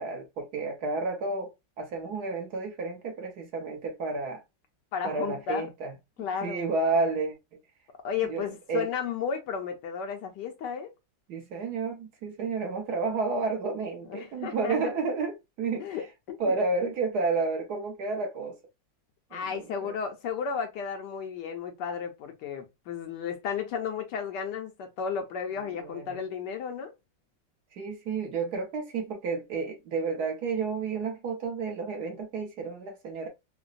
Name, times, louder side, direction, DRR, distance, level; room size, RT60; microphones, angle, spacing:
voice 1, 0.0-1.5 1.8-4.4 5.0-5.9 6.4-7.3 8.3-8.4 8.7-8.9 11.3-15.9 16.4-18.6 19.3-19.9 25.7-26.2 27.8-33.3, right 3 dB, 65° right, 1.3 m, -31 dB
voice 2, 4.9-5.7 6.2-6.7 8.0-10.9 14.1-14.8 15.8-16.6 19.3-26.9, left 7 dB, 70° left, 1.2 m, -33 dB
3.8 x 2.1 x 2.4 m
omnidirectional pair, 2.0 m